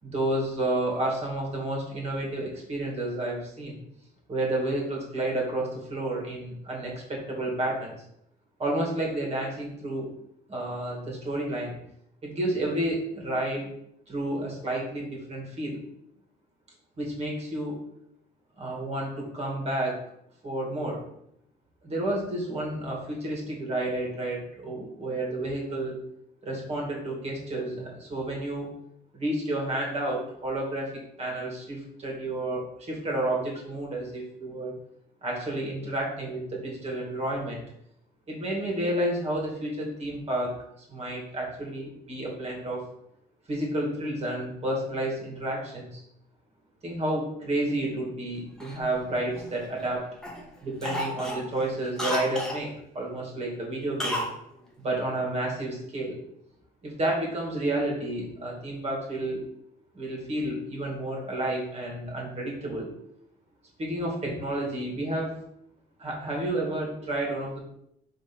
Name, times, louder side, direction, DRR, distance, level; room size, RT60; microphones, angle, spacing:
voice 1, 0.0-3.8 4.3-8.0 8.6-10.1 10.5-11.7 12.2-13.7 14.1-15.8 17.0-17.8 18.6-20.0 20.4-21.0 21.8-26.0 26.4-28.7 29.1-34.7 35.2-37.6 38.3-40.6 40.9-42.8 43.5-46.0 46.8-50.1 50.6-54.3 54.8-56.2 56.8-59.4 59.9-62.9 63.8-65.4 66.0-67.6, right 1 dB, 40° right, -2 dB, 2.6 m, -30 dB
Cough, 48.6-49.9 50.2-50.5 50.8-52.6 54.0-54.4 54.6-54.7, left 1 dB, 5° left, 1.4 m, -32 dB
5.3 x 3.8 x 5.5 m, 0.75 s
cardioid pair, 110°, 17 cm